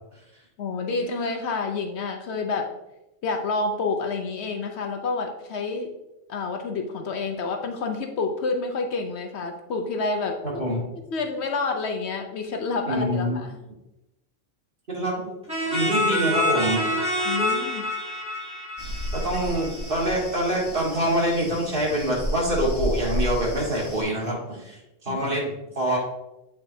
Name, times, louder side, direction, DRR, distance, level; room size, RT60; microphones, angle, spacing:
voice 1, 0.6-2.7 3.2-5.9 6.3-10.6 11.1-13.6 17.2-17.9 25.1-25.2, left 3 dB, 65° left, 4 dB, 0.9 m, -28 dB
voice 2, 12.9-13.4 14.9-15.1 15.7-16.9 19.1-26.0, right 1 dB, 50° right, -3 dB, 1.8 m, -25 dB
sound 1, 15.5-20.1, left 1 dB, 5° right, 2.0 m, -26 dB
sound 2, 18.8-24.0, equal, 25° left, 0.8 m, -32 dB
8.7 x 4.1 x 2.7 m, 0.93 s
omnidirectional pair, 1.2 m